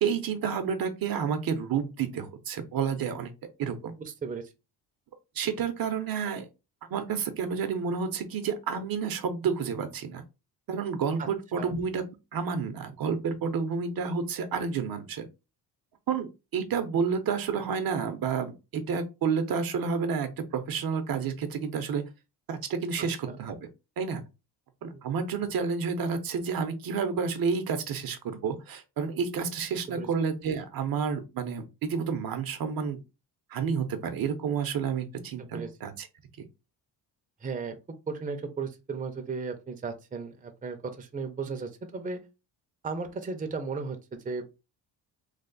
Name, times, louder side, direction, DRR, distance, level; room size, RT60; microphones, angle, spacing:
voice 1, 0.0-3.3 3.6-3.9 5.3-6.5 6.9-10.2 10.7-12.0 12.3-15.3 16.1-22.0 22.5-23.7 24.0-24.2 24.8-33.0 33.5-36.1, right 6 dB, 55° right, 0.7 m, -30 dB
voice 2, 4.0-4.5 11.2-11.3 11.6-11.7 23.0-23.4 24.9-25.0 29.9-30.1 35.4-35.7 37.4-37.8 38.1-42.2 42.8-44.5, right 4 dB, 20° right, 0.6 m, -35 dB
3.3 x 2.0 x 3.8 m
cardioid pair, 105°, 42 cm